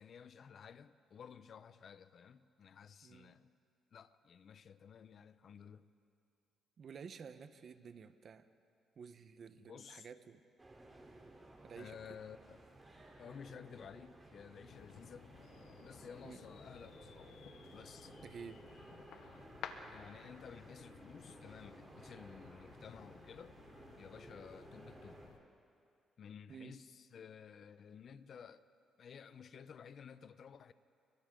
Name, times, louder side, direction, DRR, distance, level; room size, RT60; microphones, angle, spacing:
voice 1, 0.0-3.5 3.9-5.9 9.6-10.1 11.8-12.6 13.2-15.3 15.8-17.4 17.7-18.1 19.9-23.7 24.0-25.2 26.2-28.7 29.0-30.7, left 7 dB, 55° left, 0.7 m, -54 dB
voice 2, 6.8-8.4 9.0-10.4 11.6-12.0 16.2-16.4 18.2-18.6 26.5-26.7, right 6 dB, 55° right, 1.1 m, -51 dB
sound 1, 10.6-25.3, right 2 dB, 20° right, 3.7 m, -57 dB
sound 2, 10.9-18.6, right 5 dB, 90° right, 2.8 m, -72 dB
sound 3, 14.7-25.4, left 8 dB, 85° left, 1.2 m, -56 dB
29.5 x 23.5 x 3.9 m
cardioid pair, 90°, 0 cm